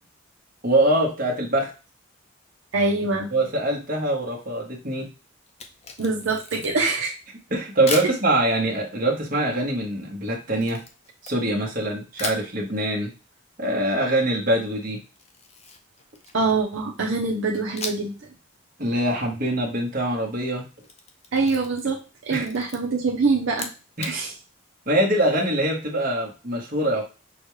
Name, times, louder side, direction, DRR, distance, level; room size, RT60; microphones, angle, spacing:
voice 1, 0.6-1.7 3.3-5.1 7.5-10.8 11.2-13.1 13.6-15.0 18.8-20.6 22.3-22.5 24.0-24.2 24.9-27.0, right 1 dB, 45° right, -2 dB, 1.3 m, -23 dB
voice 2, 2.7-3.3 6.0-7.2 16.3-18.1 21.3-23.7 24.1-24.3, right 3 dB, 75° right, -2 dB, 0.7 m, -24 dB
Camera, 5.5-6.9 7.9-8.2 10.6-11.8 12.2-12.5 15.2-16.7 17.8-18.2 18.5-18.6 20.6-22.0 22.3-22.8 23.5-24.2, left 4 dB, 30° left, 0.6 m, -36 dB
6.1 x 2.3 x 3.1 m, 0.32 s
head